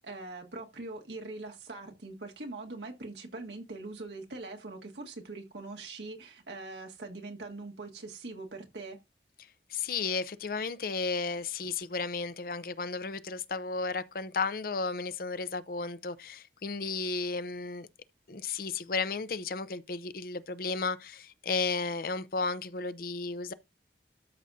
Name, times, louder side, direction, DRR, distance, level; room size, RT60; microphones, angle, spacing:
voice 1, 0.0-9.0, right 2 dB, 80° right, 1.7 m, -42 dB
voice 2, 9.7-17.9 18.3-23.5, left 4 dB, 55° left, 0.6 m, -33 dB
13.0 x 6.1 x 2.7 m
head